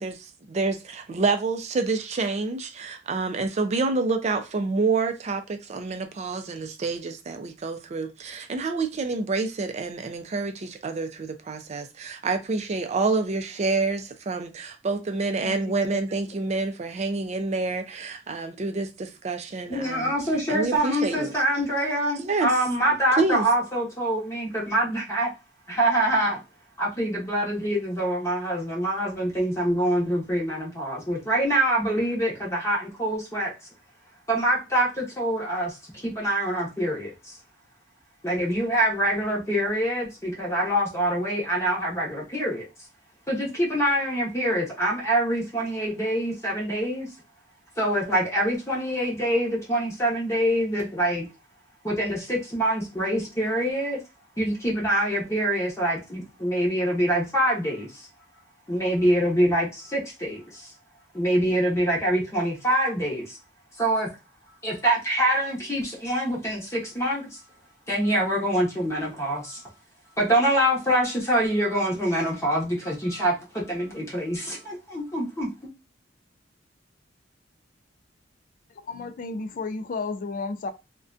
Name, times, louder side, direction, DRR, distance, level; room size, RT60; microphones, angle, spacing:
voice 1, 0.0-20.1 20.5-21.3 22.2-22.5 23.2-23.5, right 3 dB, 35° right, 0.4 m, -28 dB
voice 2, 15.4-16.0 78.8-80.7, left 3 dB, 45° left, 0.3 m, -33 dB
voice 3, 19.7-25.3 25.7-26.4 26.8-33.5 34.3-37.4 38.2-42.7 43.3-47.1 47.8-51.3 51.8-54.0 54.4-58.1 58.7-60.7 61.1-63.4 63.8-64.1 64.6-67.4 67.9-69.6 70.2-75.7, right 1 dB, 15° left, 0.8 m, -25 dB
2.4 x 2.2 x 2.4 m
head